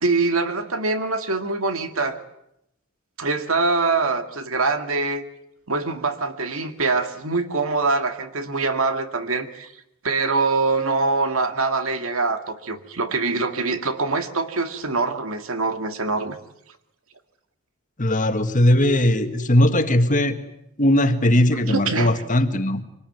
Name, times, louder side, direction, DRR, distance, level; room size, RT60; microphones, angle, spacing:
voice 1, 0.0-2.2 3.2-5.2 5.7-9.7 10.0-16.4 21.7-22.1, right 3 dB, 75° right, 8 dB, 2.1 m, -24 dB
voice 2, 18.0-20.4 20.8-22.8, left 1 dB, 35° left, 8 dB, 1.8 m, -19 dB
25.5 x 19.5 x 9.4 m, 0.82 s
head